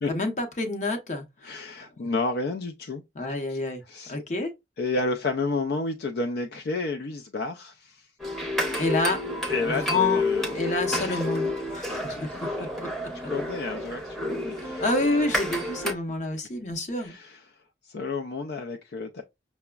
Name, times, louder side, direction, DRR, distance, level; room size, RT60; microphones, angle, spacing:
voice 1, 0.1-1.5 1.8-1.9 3.2-3.8 4.1-4.5 8.8-9.2 9.7-10.2 10.5-12.3 12.6-12.9 14.8-17.1, left 2 dB, 40° left, 0.7 m, -28 dB
voice 2, 1.4-3.0 3.5-3.6 3.9-4.2 4.8-8.1 9.5-10.7 11.0-11.3 11.7-12.7 13.3-14.9 15.3-15.4 17.0-19.2, left 3 dB, 60° left, 0.4 m, -31 dB
sound 1, 8.2-15.9, left 1 dB, ahead, 0.7 m, -30 dB
5.8 x 2.1 x 2.3 m
head